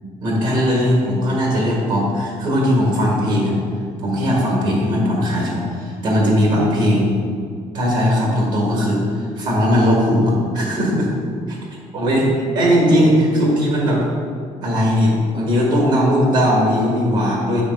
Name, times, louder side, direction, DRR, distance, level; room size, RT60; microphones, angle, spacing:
voice 1, 0.2-3.6 4.0-7.2 7.7-11.1 11.9-12.2 12.5-14.0 14.6-17.6, equal, 85° right, -2 dB, 1.6 m, -18 dB
8.1 x 3.2 x 5.1 m, 2.2 s
cardioid pair, 90°, 13 cm